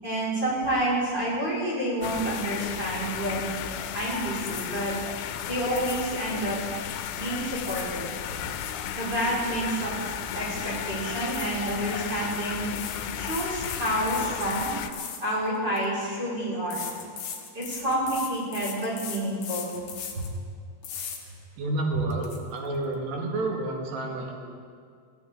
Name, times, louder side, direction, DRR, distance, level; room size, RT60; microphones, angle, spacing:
voice 1, 0.0-3.5 3.9-5.0 5.5-6.6 7.1-8.1 9.0-10.0 10.3-12.7 13.2-14.7 15.2-16.9 17.5-19.7, right 1 dB, 25° right, -8 dB, 5.6 m, -29 dB
sound 1, 2.0-14.9, left 9 dB, 90° left, 2.9 m, -34 dB
sound 2, 4.4-5.0 5.7-6.2 7.3-8.0 8.3-10.2 10.4-10.7 11.3-11.9 12.7-15.9 16.7-20.3 20.8-21.2 21.7-21.8 22.1-22.4, left 7 dB, 65° left, 3.1 m, -39 dB
voice 2, 21.6-24.3, right 2 dB, 70° right, 0 dB, 4.0 m, -30 dB
23.5 x 15.0 x 3.8 m, 2.1 s
omnidirectional pair, 5.2 m